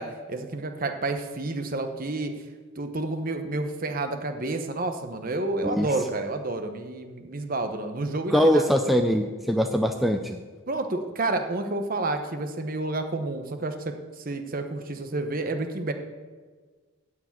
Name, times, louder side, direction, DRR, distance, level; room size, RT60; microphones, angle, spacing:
voice 1, 0.0-2.3 2.8-8.6 10.7-15.9, right 2 dB, 45° right, 7 dB, 1.0 m, -30 dB
voice 2, 8.3-10.4, equal, ahead, 4 dB, 0.4 m, -22 dB
14.0 x 4.9 x 8.7 m, 1.4 s
head